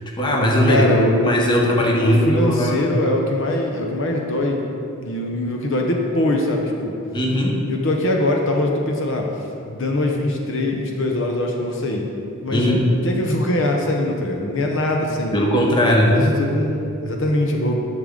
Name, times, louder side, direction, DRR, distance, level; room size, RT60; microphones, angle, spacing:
voice 1, 0.2-0.9 1.2-2.8 7.1-7.6 12.5-12.9 15.3-16.3, equal, 20° left, -1 dB, 1.0 m, -18 dB
voice 2, 0.7-1.7 2.0-4.6 5.0-6.9 7.7-9.3 9.7-12.0 12.4-15.4 16.1-17.8, left 1 dB, 60° left, 1 dB, 0.8 m, -22 dB
10.5 x 6.5 x 3.8 m, 2.7 s
head